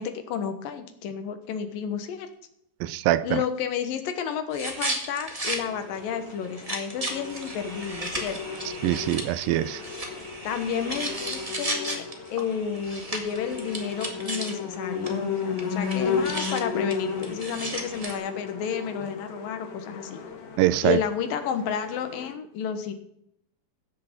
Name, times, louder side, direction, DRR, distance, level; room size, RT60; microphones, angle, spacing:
voice 1, 0.0-2.3 3.2-8.4 10.4-12.0 12.3-20.2 20.8-22.9, left 7 dB, 80° left, 3.0 m, -31 dB
voice 2, 2.8-3.4 8.8-9.8 20.6-21.0, right 14 dB, 80° right, 2.3 m, -23 dB
sound 1, 4.5-5.6 6.0-6.1 6.4-14.7 15.0-15.1 15.4-18.2, right 1 dB, 20° right, 0.9 m, -35 dB
sound 2, 5.5-22.3, left 6 dB, 60° left, 2.8 m, -35 dB
16.0 x 6.8 x 7.4 m
omnidirectional pair, 4.1 m